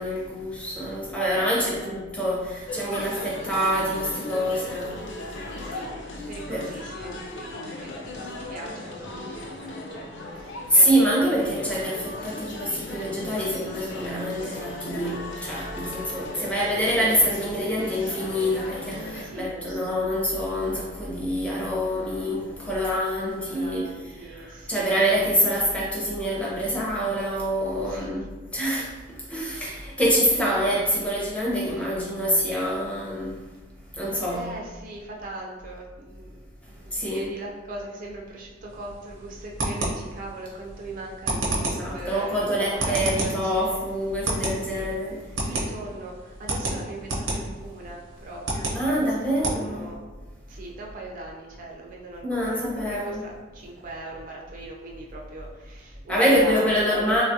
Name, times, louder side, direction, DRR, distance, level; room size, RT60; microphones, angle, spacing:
voice 1, 0.0-5.1 6.5-6.7 10.7-23.9 24.3-28.9 29.3-33.4 33.9-34.5 36.9-37.3 41.8-45.2 48.7-49.9 52.2-53.2 56.1-57.2, equal, 5° left, -6 dB, 0.6 m, -25 dB
voice 2, 1.6-2.0 2.9-3.3 5.6-5.9 6.3-11.7 17.7-17.8 19.2-20.5 23.4-25.0 27.8-28.3 30.2-30.7 31.7-31.9 34.3-36.4 36.9-43.7 44.7-44.9 45.4-48.7 49.0-50.0 50.5-57.2, right 2 dB, 45° right, -1 dB, 0.4 m, -40 dB
sound 1, 2.7-19.2, left 2 dB, 65° left, 0.4 m, -37 dB
sound 2, 38.7-49.6, right 2 dB, 90° right, 0.7 m, -31 dB
3.1 x 2.3 x 2.6 m, 1.3 s
head